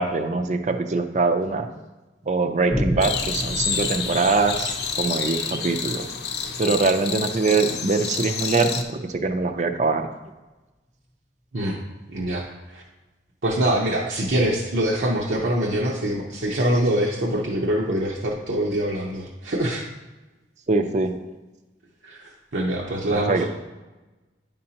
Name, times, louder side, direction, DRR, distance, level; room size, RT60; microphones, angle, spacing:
voice 1, 0.0-1.7 2.3-6.1 6.6-10.1 20.7-21.1 23.1-23.4, right 3 dB, 40° right, 7 dB, 0.5 m, -23 dB
Boom, 2.7-9.6 10.1-10.2, equal, 10° left, 0.5 m, -34 dB
sound 1, 3.0-8.8, left 6 dB, 65° left, 0.6 m, -29 dB
voice 2, 12.1-12.8 13.4-19.9 22.0-23.4, right 1 dB, 75° right, -3 dB, 0.8 m, -24 dB
9.6 x 5.3 x 2.9 m, 1.1 s
head